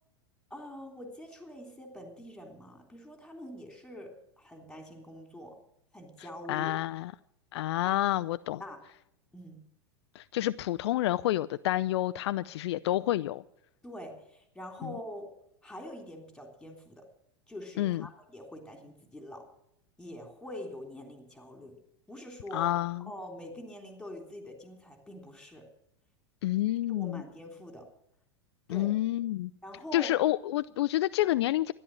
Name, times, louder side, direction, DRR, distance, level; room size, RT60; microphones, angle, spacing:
voice 1, 0.5-5.6 5.9-6.7 8.6-8.8 9.3-9.6 13.8-15.3 15.6-17.1 17.5-19.5 20.0-21.8 22.1-22.7 23.0-25.7 26.9-27.9 28.7-28.9 29.6-30.2, equal, 5° left, 4 dB, 3.5 m, -44 dB
voice 2, 6.5-7.1 7.5-8.6 10.2-13.4 17.8-18.0 22.5-23.0 26.4-27.2 28.7-29.5 29.9-31.7, left 15 dB, 65° left, 13 dB, 0.4 m, -29 dB
13.5 x 11.0 x 7.5 m, 0.76 s
hypercardioid pair, 100°, 15 cm